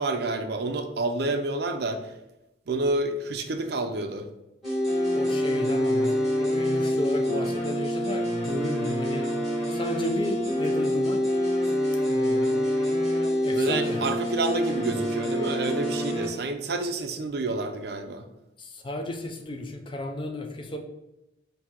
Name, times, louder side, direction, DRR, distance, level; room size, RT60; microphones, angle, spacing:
voice 1, 0.0-2.0 2.7-4.2 13.5-18.2, right 2 dB, 55° right, 6 dB, 0.5 m, -29 dB
sound 1, 4.6-16.3, equal, ahead, 1.5 m, -26 dB
voice 2, 5.1-9.3 9.7-11.3 12.1-12.7 13.4-14.0 18.6-20.8, left 1 dB, 25° left, 4 dB, 0.4 m, -33 dB
4.4 x 2.7 x 3.5 m, 0.94 s
head